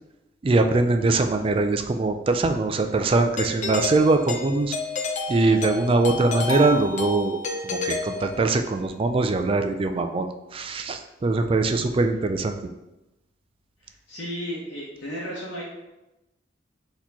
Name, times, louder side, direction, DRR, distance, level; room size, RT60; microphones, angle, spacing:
voice 1, 0.4-4.8 5.3-12.6, right 3 dB, 30° right, 6 dB, 0.3 m, -22 dB
Doorbell, 3.4-8.8, left 3 dB, 45° left, 0.5 m, -30 dB
voice 2, 13.8-15.6, equal, 90° left, -6 dB, 0.9 m, -34 dB
4.2 x 3.0 x 4.1 m, 0.97 s
head